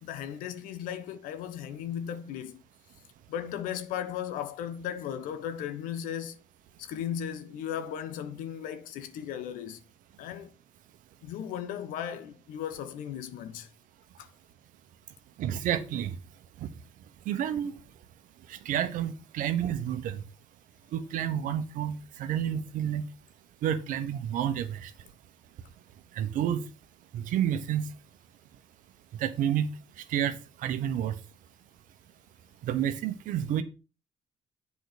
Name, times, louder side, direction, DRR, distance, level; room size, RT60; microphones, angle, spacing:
voice 1, 0.0-2.6 3.3-6.4 6.8-9.8 10.2-10.5 11.2-13.7 14.2-14.3, left 9 dB, 80° left, 1.0 m, -36 dB
voice 2, 15.4-16.1 17.3-17.7 18.5-20.2 20.9-23.1 23.6-24.9 26.2-26.6 27.1-27.9 29.1-29.7 30.1-31.1 32.6-33.6, right 10 dB, 75° right, 1.1 m, -30 dB
8.0 x 4.7 x 6.7 m
supercardioid pair, 60°, 14 cm